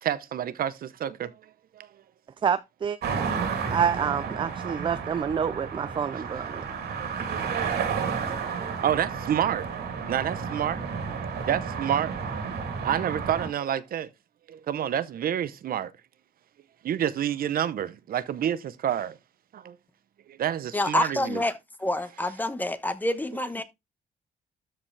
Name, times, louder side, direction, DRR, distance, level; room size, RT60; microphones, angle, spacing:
voice 1, 0.0-1.3 1.7-1.9 6.1-6.4 7.2-7.8 8.4-9.7 10.1-10.8 11.5-12.1 12.8-14.1 14.5-15.9 16.8-19.2 19.5-19.8 20.3-21.4, right 10 dB, 60° right, 0.7 m, -29 dB
voice 2, 2.4-3.0 3.7-6.6, right 7 dB, 30° right, 0.4 m, -27 dB
sound 1, 3.0-13.5, right 6 dB, 80° right, 2.8 m, -32 dB
voice 3, 20.7-21.5 21.8-23.6, left 1 dB, 10° left, 1.0 m, -27 dB
13.0 x 4.9 x 3.3 m
cardioid pair, 135°, 17 cm